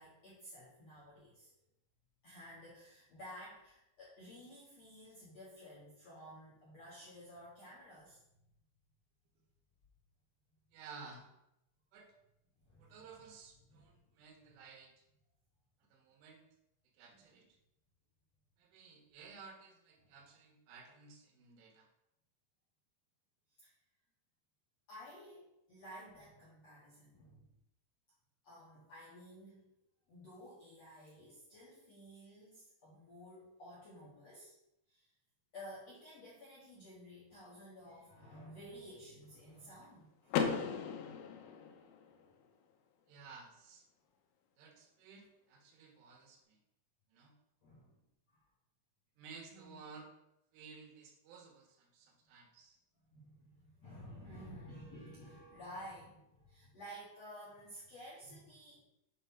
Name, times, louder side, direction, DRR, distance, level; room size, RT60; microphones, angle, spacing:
voice 1, 0.0-1.5 2.2-8.2 12.6-12.9 13.7-13.9 17.1-17.2 20.0-20.2 23.5-23.7 24.9-27.5 28.4-29.7 30.1-34.6 34.9-35.1 35.5-40.4 47.6-47.9 48.3-48.4 49.5-49.8 53.1-58.8, equal, 60° left, -7 dB, 1.7 m, -53 dB
voice 2, 10.7-11.3 11.9-12.1 12.8-14.9 15.9-16.5 16.9-17.6 18.6-21.9 43.1-43.9 44.6-46.6 47.1-47.3 49.2-50.1 50.5-52.8, right 5 dB, 80° right, 1 dB, 3.9 m, -55 dB
Car / Door, 40.3-42.2, left 6 dB, 85° left, 3.4 m, -36 dB
8.3 x 3.9 x 5.6 m, 0.84 s
omnidirectional pair, 5.6 m